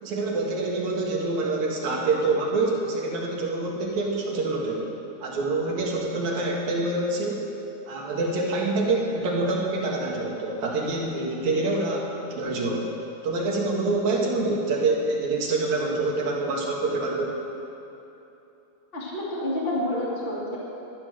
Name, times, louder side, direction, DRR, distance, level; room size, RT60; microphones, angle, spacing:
voice 1, 0.0-4.9 5.2-7.5 7.9-12.9 13.2-17.4, right 2 dB, 60° right, -2 dB, 2.4 m, -26 dB
voice 2, 18.9-20.6, left 1 dB, 25° left, -6 dB, 1.4 m, -28 dB
12.0 x 9.9 x 6.4 m, 3.0 s
omnidirectional pair, 4.4 m